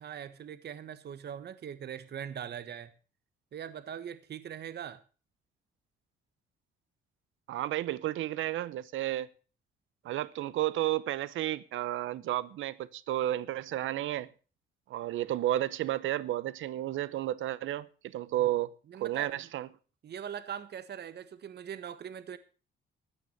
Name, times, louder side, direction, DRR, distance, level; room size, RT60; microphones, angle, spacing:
voice 1, 0.0-2.9 3.5-5.0 18.4-18.5 18.9-19.4 20.0-22.4, right 8 dB, 55° right, 1.3 m, -41 dB
voice 2, 7.5-9.3 10.0-14.3 14.9-19.7, right 14 dB, 80° right, 0.9 m, -32 dB
14.0 x 9.4 x 6.9 m
cardioid pair, 90°, 20 cm